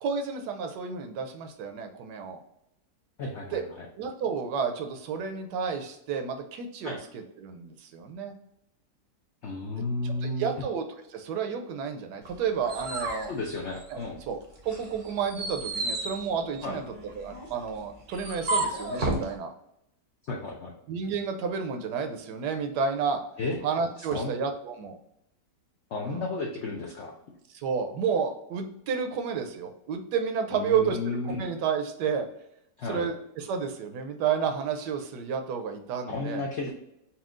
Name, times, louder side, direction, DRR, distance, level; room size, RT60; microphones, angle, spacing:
voice 1, 0.0-2.4 3.5-3.6 4.0-8.3 10.0-10.8 11.1-13.3 13.9-14.0 14.3-14.4 14.6-16.8 17.2-19.5 20.9-23.2 23.6-25.0 26.0-26.2 27.5-32.3 32.8-36.5, right 6 dB, 75° right, 6 dB, 1.1 m, -31 dB
voice 2, 3.2-3.9 6.8-7.0 9.4-10.5 13.3-14.2 16.6-16.8 20.3-20.7 23.4-23.6 24.1-24.3 25.9-27.1 30.5-31.4 32.8-33.1 36.1-36.7, left 3 dB, 80° left, 0 dB, 0.6 m, -33 dB
sound 1, 12.2-14.2 14.6-19.3, right 2 dB, 45° right, 0.6 m, -33 dB
4.3 x 2.3 x 3.6 m, 0.81 s
omnidirectional pair, 1.9 m